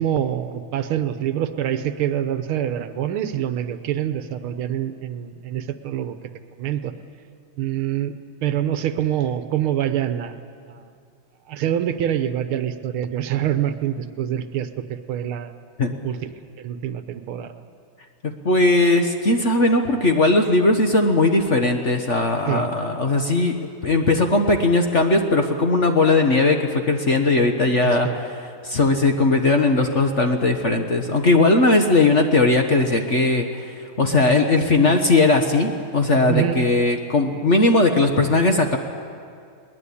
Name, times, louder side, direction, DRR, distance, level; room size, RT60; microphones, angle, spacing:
voice 1, 0.0-6.2 6.6-6.9 7.6-10.4 10.7-10.9 11.5-15.5 16.0-16.2 16.6-17.5 22.5-22.7 27.8-28.2 36.3-36.6, right 10 dB, 75° right, 10 dB, 1.8 m, -25 dB
voice 2, 18.2-28.3 28.6-38.8, left 2 dB, 40° left, 4 dB, 1.2 m, -19 dB
21.5 x 20.0 x 8.5 m, 2.2 s
omnidirectional pair, 2.4 m